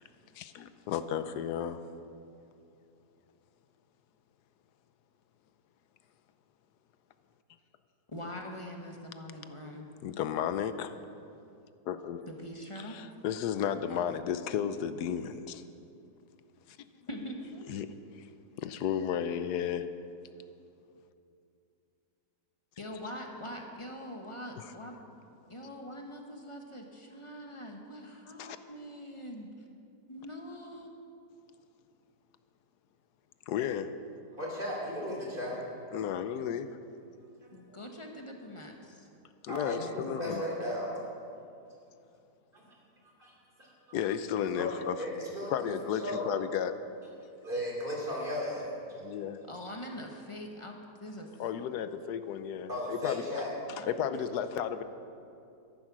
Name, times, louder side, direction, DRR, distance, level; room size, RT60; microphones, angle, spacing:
voice 1, 0.3-1.8 10.0-10.9 11.9-12.3 12.8-15.6 16.7-16.8 17.7-17.9 18.1-18.3 18.6-19.9 24.6-24.7 28.4-28.6 33.5-33.9 35.9-36.7 39.4-40.4 43.9-45.0 45.5-46.8 49.0-49.4 51.4-54.8, left 9 dB, 75° left, 11 dB, 1.2 m, -33 dB
voice 2, 8.1-9.9 12.3-13.0 17.1-17.7 22.8-25.1 25.5-29.5 30.1-30.9 37.5-39.1 49.5-51.3 53.8-54.2, equal, 20° left, 2 dB, 1.0 m, -43 dB
voice 3, 34.3-35.6 37.4-37.5 39.5-40.9 42.5-42.6 43.0-43.3 43.6-44.0 44.5-45.7 46.0-46.3 47.4-48.7 52.7-53.5, left 1 dB, 30° right, -3 dB, 3.0 m, -36 dB
13.5 x 10.5 x 6.1 m, 2.5 s
omnidirectional pair, 1.8 m